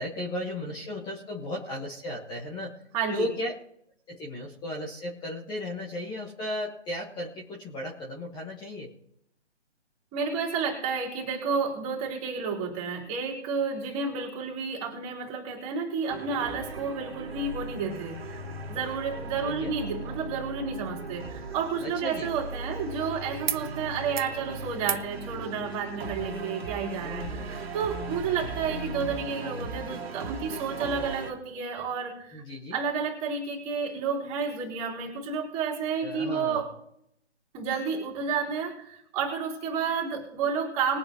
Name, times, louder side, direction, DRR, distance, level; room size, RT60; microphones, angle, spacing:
voice 1, 0.0-2.8 3.1-3.5 4.1-8.9 19.4-19.7 21.8-22.3 27.0-27.6 32.3-32.8 36.0-36.6, left 1 dB, 10° left, -2 dB, 1.5 m, -35 dB
voice 2, 2.9-3.3 10.1-18.4 18.7-32.4 32.7-36.7 37.5-41.0, right 5 dB, 20° right, -2 dB, 3.6 m, -31 dB
sound 1, 16.1-31.3, right 3 dB, 60° right, 2.2 m, -38 dB
sound 2, 23.4-23.7 24.0-24.4 24.8-25.1 26.4-26.5, right 8 dB, 45° right, 0.5 m, -36 dB
21.5 x 8.6 x 3.1 m, 0.72 s
figure-of-eight pair, 140°, 35 cm